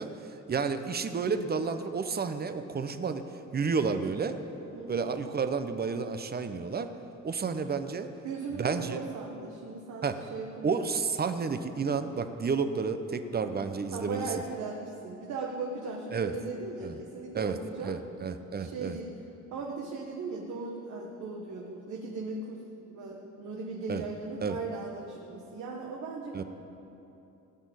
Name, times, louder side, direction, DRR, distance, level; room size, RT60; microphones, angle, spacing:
voice 1, 0.0-3.2 3.5-4.4 4.9-6.9 7.2-8.1 8.5-9.0 10.0-10.2 10.6-14.3 16.1-16.3 16.8-17.0 17.3-17.6 17.8-19.0 23.9-24.0 24.4-24.6 26.3-26.4, right 5 dB, 30° right, 9 dB, 0.9 m, -31 dB
voice 2, 8.2-10.9 13.9-18.0 18.6-19.1 19.5-26.4, right 4 dB, 70° right, -1 dB, 1.4 m, -38 dB
17.0 x 6.3 x 9.7 m, 3.0 s
cardioid pair, 90°, 30 cm